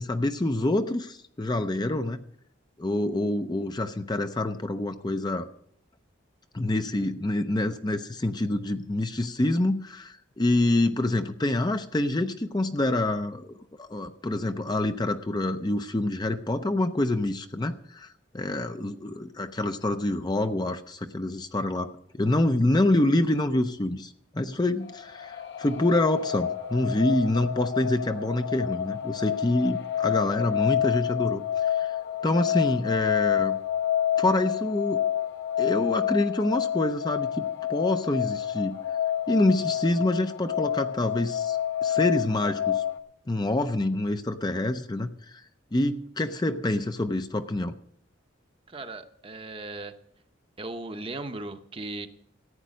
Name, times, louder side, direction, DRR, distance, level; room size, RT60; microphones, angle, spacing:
voice 1, 0.0-2.2 2.8-5.5 6.5-13.5 13.8-21.9 22.1-32.0 32.2-33.6 34.2-35.0 35.6-38.8 39.3-42.8 43.3-45.4 45.7-47.7, left 1 dB, 20° left, 8 dB, 0.5 m, -26 dB
sound 1, 24.8-43.0, left 10 dB, 60° left, 0.9 m, -28 dB
voice 2, 48.7-49.9 50.6-52.1, right 2 dB, 25° right, 8 dB, 0.8 m, -37 dB
14.5 x 9.2 x 6.4 m, 0.69 s
head